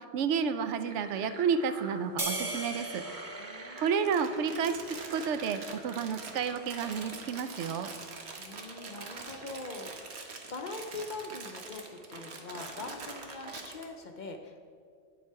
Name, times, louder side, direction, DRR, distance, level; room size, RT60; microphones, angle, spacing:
voice 1, 0.0-3.0 3.8-4.7 5.1-7.9, right 6 dB, 85° right, 10 dB, 0.9 m, -31 dB
sound 1, 0.9-6.6, right 2 dB, 50° right, 1.0 m, -48 dB
sound 2, 2.2-4.8, right 2 dB, 25° right, 0.5 m, -38 dB
voice 2, 3.4-4.0 8.4-14.7, left 3 dB, 55° left, 4 dB, 0.6 m, -43 dB
Crumpling crinkling, 3.8-13.8, right 3 dB, 70° right, 1.2 m, -44 dB
9.3 x 7.1 x 4.6 m, 2.3 s
omnidirectional pair, 1.2 m